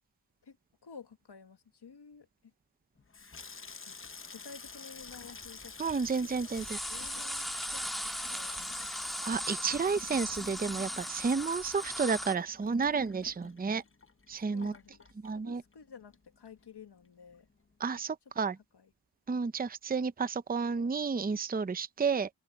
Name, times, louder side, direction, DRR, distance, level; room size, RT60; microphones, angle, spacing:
voice 1, 0.8-2.5 3.8-4.0 4.3-6.2 6.5-8.9 14.4-17.5 18.7-18.9, left 6 dB, 65° left, 1.7 m, -52 dB
Water tap faucet / Sink (filling or washing), 3.0-15.8 16.1-16.8 17.0-17.4, left 4 dB, 30° left, 0.9 m, -48 dB
sound 1, 5.1-5.2 5.4-6.1 6.3-12.3, equal, ahead, 1.6 m, -38 dB
voice 2, 5.8-6.8 9.2-13.8 14.3-14.7 15.2-15.6 17.8-18.6 19.3-22.3, right 5 dB, 20° right, 0.6 m, -31 dB
open air
wide cardioid pair, 100°, 44 cm